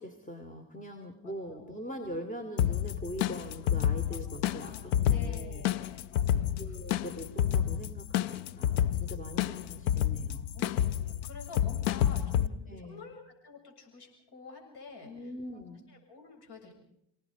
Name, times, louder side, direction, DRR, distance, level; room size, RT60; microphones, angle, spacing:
voice 1, 0.0-5.7 6.6-10.5 12.0-12.4 12.7-13.0 15.0-15.8, equal, 15° left, 6 dB, 2.8 m, -42 dB
voice 2, 1.2-1.8 4.1-4.3 4.6-4.8 5.1-6.8 10.5-15.6 15.9-16.7, left 4 dB, 60° left, 2 dB, 7.2 m, -50 dB
sound 1, 2.6-12.5, left 10 dB, 90° left, 0.8 m, -29 dB
30.0 x 18.5 x 5.1 m, 0.75 s
supercardioid pair, 80°, 45 cm